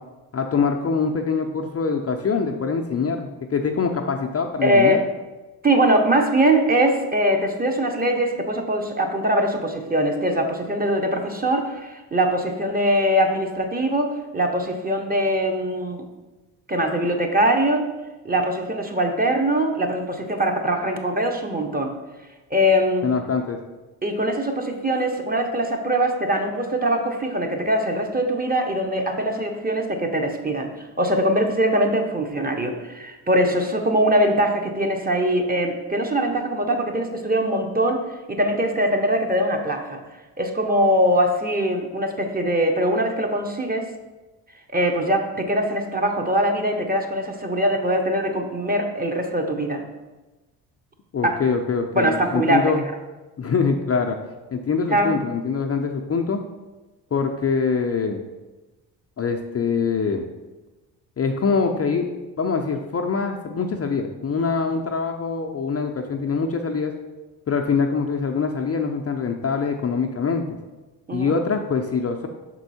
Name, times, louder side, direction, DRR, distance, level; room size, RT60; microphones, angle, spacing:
voice 1, 0.3-5.0 23.0-23.6 51.1-52.8 53.4-54.2 54.5-56.4 57.1-58.2 59.2-60.2 61.2-62.1 62.4-66.9 67.5-70.5 71.1-72.3, left 5 dB, 30° left, 3 dB, 0.6 m, -24 dB
voice 2, 4.6-5.0 5.6-16.1 16.7-17.9 18.2-21.9 22.5-23.1 24.0-30.7 31.0-40.0 40.4-43.9 44.7-49.8 51.2-51.4 51.9-52.6 54.9-55.2 71.1-71.3, right 1 dB, 20° right, 3 dB, 1.0 m, -22 dB
6.0 x 4.5 x 4.3 m, 1.1 s
hypercardioid pair, 55°, 47 cm